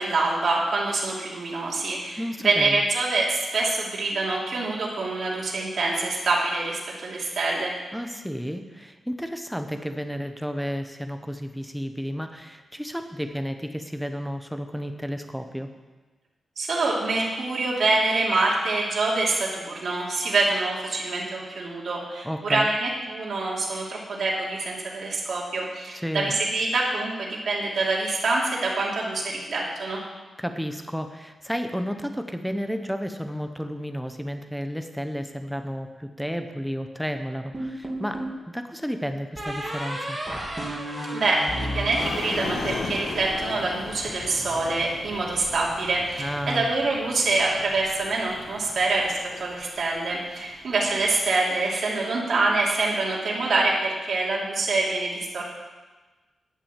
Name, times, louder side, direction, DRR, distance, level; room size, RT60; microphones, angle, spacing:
voice 1, 0.0-7.7 16.6-30.0 41.1-55.4, right 3 dB, 60° right, -5 dB, 2.8 m, -25 dB
voice 2, 2.2-2.8 7.9-15.7 22.2-22.7 25.9-26.3 30.4-38.2 38.5-40.2 46.2-46.7, equal, ahead, 6 dB, 0.8 m, -32 dB
sound 1, 37.5-38.4 39.4-42.8, equal, 15° right, 2.6 m, -32 dB
sound 2, 42.0-51.2, left 3 dB, 70° left, 1.7 m, -37 dB
10.0 x 8.3 x 7.4 m, 1.2 s
wide cardioid pair, 130°, 0 cm